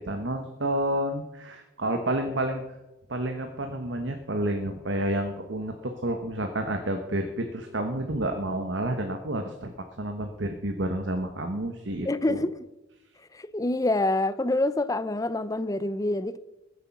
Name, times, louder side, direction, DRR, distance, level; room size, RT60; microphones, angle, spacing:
voice 1, 0.1-2.6 3.1-9.7 10.0-12.4, right 1 dB, 60° right, 1.2 m, -30 dB
voice 2, 12.0-12.7 13.3-16.4, left 2 dB, 15° left, 0.6 m, -26 dB
21.5 x 8.3 x 6.0 m
head